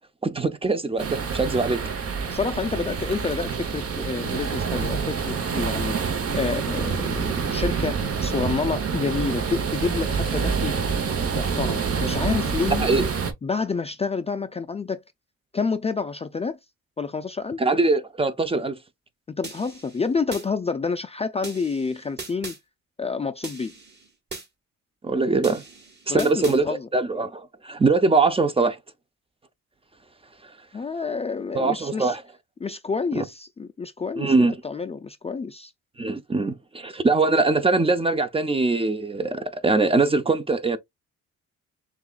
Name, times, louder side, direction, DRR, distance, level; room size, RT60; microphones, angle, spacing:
voice 1, 0.2-1.8 12.8-13.1 17.6-18.8 25.0-25.6 26.1-28.8 31.5-32.2 33.2-33.3 34.2-34.6 36.0-40.8, right 3 dB, 20° right, 0.6 m, -22 dB
sound 1, 1.0-13.3, right 6 dB, 50° right, 1.1 m, -27 dB
voice 2, 2.3-10.8 11.3-12.9 13.4-15.0 15.5-16.6 17.0-17.6 19.3-22.5 23.0-23.7 26.1-26.9 30.7-32.2 32.6-35.7, left 4 dB, 20° left, 0.4 m, -28 dB
sound 2, 19.4-20.5 21.4-22.6 23.4-24.5 25.4-26.6, right 3 dB, 35° right, 1.9 m, -39 dB
6.8 x 2.5 x 2.4 m
cardioid pair, 90°, 30 cm